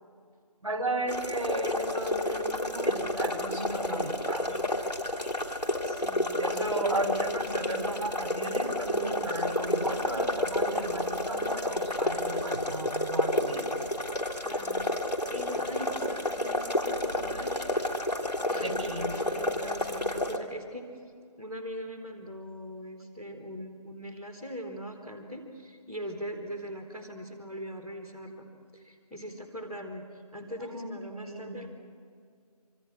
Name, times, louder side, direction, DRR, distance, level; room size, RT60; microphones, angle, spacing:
voice 1, 0.6-4.6 6.4-13.8 16.0-16.1 18.5-19.1 30.6-31.6, right 1 dB, 50° right, 4 dB, 3.9 m, -34 dB
sound 1, 1.1-20.4, left 1 dB, 90° left, 3.1 m, -30 dB
voice 2, 5.8-6.4 14.4-18.1 18.5-20.9 21.4-30.0 30.3-31.7, equal, 5° left, -14 dB, 2.0 m, -41 dB
27.0 x 25.5 x 6.3 m, 2.2 s
figure-of-eight pair, 165°, 20 cm